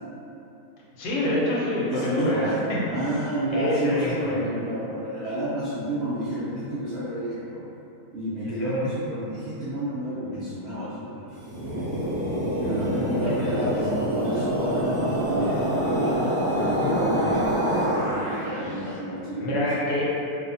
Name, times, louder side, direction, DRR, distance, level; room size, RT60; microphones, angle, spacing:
voice 1, 1.0-2.8 3.5-4.4 8.4-8.9 13.2-13.6 19.4-20.2, left 1 dB, 85° left, -6 dB, 1.2 m, -27 dB
voice 2, 1.9-2.6 2.9-7.6 8.1-12.1 12.6-16.2 16.5-19.6, equal, 75° right, -11 dB, 0.6 m, -30 dB
sound 1, 11.3-18.7, equal, 35° right, 1.2 m, -26 dB
2.7 x 2.3 x 2.5 m, 2.9 s
omnidirectional pair, 1.7 m